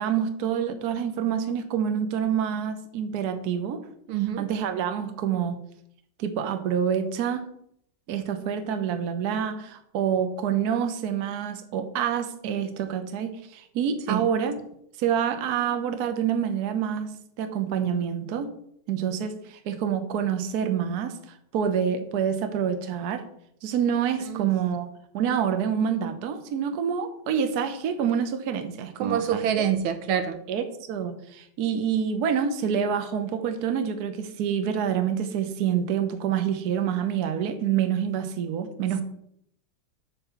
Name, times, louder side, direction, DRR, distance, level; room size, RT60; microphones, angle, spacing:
voice 1, 0.0-3.8 4.4-5.6 6.2-7.4 8.1-14.5 15.0-18.5 18.9-21.2 21.5-23.2 23.6-24.9 25.1-29.7 30.5-39.0, right 8 dB, 60° right, 8 dB, 1.2 m, -27 dB
voice 2, 4.1-4.5 14.1-14.3 24.2-24.5 29.0-30.4, right 9 dB, 90° right, 8 dB, 1.7 m, -26 dB
8.9 x 3.8 x 6.8 m, 0.71 s
omnidirectional pair, 2.2 m